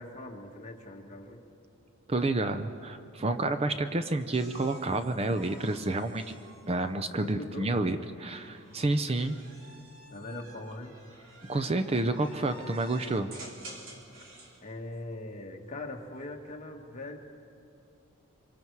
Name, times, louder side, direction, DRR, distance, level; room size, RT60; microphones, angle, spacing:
voice 1, 0.0-1.4 7.2-7.7 10.1-11.0 14.6-17.2, left 1 dB, 35° left, 1 dB, 1.7 m, -41 dB
voice 2, 2.1-6.2 6.7-9.4 11.5-13.3, right 2 dB, 30° right, 9 dB, 0.6 m, -29 dB
sound 1, 4.3-7.6 8.4-14.6 16.1-16.6, right 1 dB, 65° right, 3.2 m, -51 dB
26.0 x 24.5 x 4.7 m, 2.6 s
head